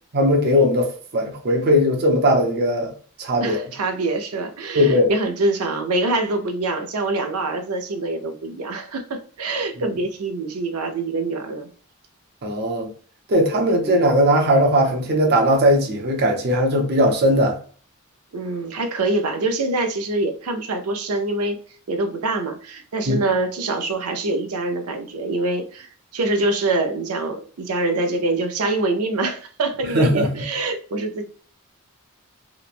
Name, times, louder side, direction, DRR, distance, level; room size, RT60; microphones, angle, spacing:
voice 1, 0.1-2.9 3.2-3.6 4.7-5.1 12.4-12.9 13.3-17.6 23.1-23.2 29.9-30.4, equal, 50° right, 0.6 m, -18 dB
voice 2, 3.4-11.7 13.7-14.0 18.3-21.6 21.9-31.2, right 2 dB, 90° right, 0.5 m, -25 dB
2.9 x 2.1 x 2.4 m
head